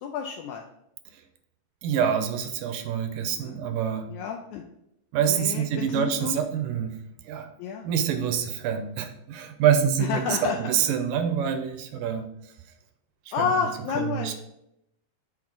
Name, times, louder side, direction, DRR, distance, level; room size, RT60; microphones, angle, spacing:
voice 1, 0.0-0.6 3.4-3.6 4.1-4.6 5.3-6.3 7.6-7.8 10.0-10.6 13.3-14.3, left 6 dB, 85° left, 2 dB, 1.7 m, -30 dB
voice 2, 1.8-4.1 5.1-7.0 7.3-7.5 7.8-12.3 13.3-13.7 14.0-14.3, right 8 dB, 80° right, 7 dB, 2.2 m, -26 dB
7.3 x 3.9 x 4.7 m, 0.79 s
omnidirectional pair, 4.0 m